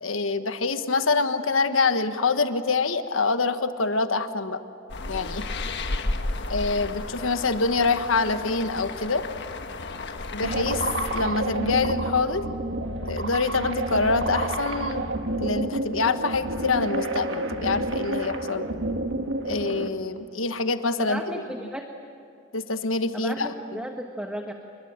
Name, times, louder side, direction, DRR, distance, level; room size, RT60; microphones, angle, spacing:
voice 1, 0.0-4.6 5.1-5.5 6.5-9.2 10.3-10.9 11.1-12.5 13.1-15.1 15.4-18.7 19.4-21.4 22.5-23.5, left 3 dB, 85° left, 9 dB, 1.4 m, -25 dB
sound 1, 4.9-11.3, left 2 dB, 60° left, 1.3 m, -33 dB
sound 2, 10.4-19.9, right 1 dB, 65° right, 1.7 m, -29 dB
voice 2, 21.0-21.9 23.1-24.5, equal, 5° right, 3 dB, 1.3 m, -34 dB
28.0 x 22.0 x 8.9 m, 2.4 s
head